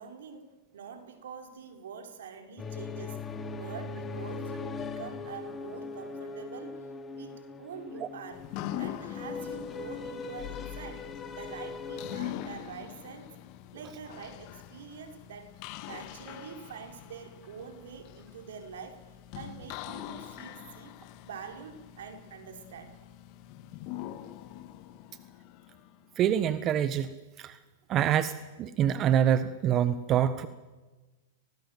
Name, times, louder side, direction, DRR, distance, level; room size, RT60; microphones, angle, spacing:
voice 1, 0.0-3.2 3.6-6.8 7.1-8.4 8.8-13.3 13.7-15.5 15.9-19.1 19.3-20.9 21.2-23.0, right 6 dB, 75° right, 5 dB, 4.3 m, -45 dB
sound 1, 2.6-12.2, left 4 dB, 20° left, 2.7 m, -40 dB
sound 2, 8.3-26.1, left 12 dB, 45° left, 1.9 m, -43 dB
voice 2, 26.2-27.1 27.4-27.6 27.9-28.3 28.6-30.5, right 10 dB, 35° right, 12 dB, 1.3 m, -25 dB
24.0 x 18.5 x 7.8 m, 1.2 s
hypercardioid pair, 120°, 0 cm